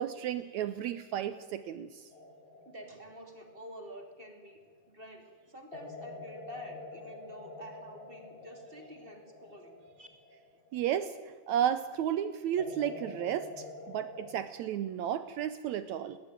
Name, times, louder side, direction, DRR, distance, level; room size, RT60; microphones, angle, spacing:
voice 1, 0.0-2.1 10.7-11.2 11.5-16.2, right 10 dB, 75° right, 13 dB, 1.8 m, -33 dB
sound 1, 2.1-4.8 5.7-11.5 12.6-14.3, left 2 dB, 65° left, 2.9 m, -48 dB
voice 2, 2.6-4.6 4.9-10.1, equal, 15° right, 4 dB, 2.6 m, -49 dB
20.0 x 18.0 x 9.1 m, 1.5 s
omnidirectional pair, 3.9 m